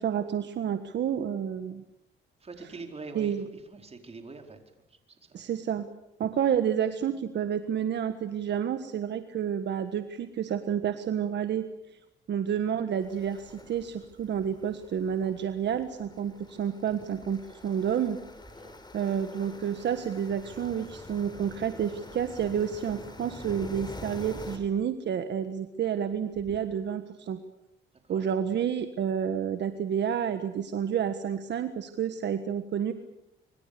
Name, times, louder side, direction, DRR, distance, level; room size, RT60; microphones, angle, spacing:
voice 1, 0.0-1.8 2.6-2.7 3.1-3.5 5.3-5.9 6.2-11.7 12.3-18.2 18.9-27.4 28.1-32.9, right 8 dB, 60° right, 9 dB, 1.5 m, -30 dB
voice 2, 2.4-3.3 3.7-4.6 5.3-5.4 18.6-18.7 28.1-28.3, right 3 dB, 30° right, 4 dB, 4.6 m, -43 dB
sound 1, 13.0-24.6, left 2 dB, 20° left, 5.0 m, -46 dB
25.5 x 25.0 x 6.9 m, 0.85 s
cardioid pair, 90°, 20 cm